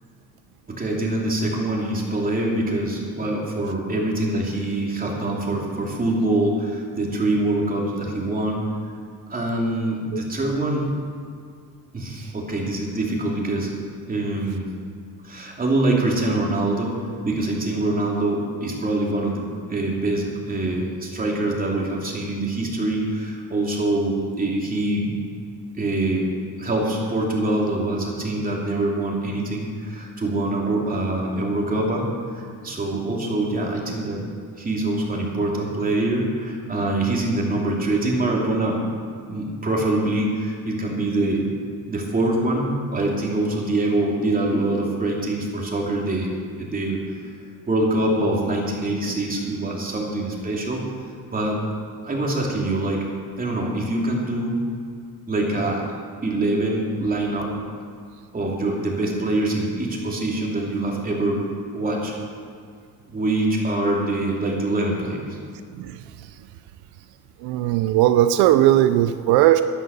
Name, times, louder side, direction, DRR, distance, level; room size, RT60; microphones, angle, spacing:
voice 1, 0.7-8.7 9.3-10.9 11.9-13.7 14.1-14.7 15.2-25.1 25.7-26.3 26.6-32.1 32.3-34.2 34.6-38.8 39.3-41.4 41.9-46.3 46.6-47.2 47.7-50.8 51.3-51.6 52.0-53.0 53.4-54.6 55.3-55.8 56.2-57.5 58.3-61.4 61.7-62.1 63.1-65.4, right 2 dB, 25° right, -2 dB, 3.0 m, -24 dB
voice 2, 67.4-69.6, right 13 dB, 90° right, 11 dB, 0.6 m, -18 dB
11.0 x 10.5 x 6.9 m, 2.2 s
cardioid pair, 115°, 37 cm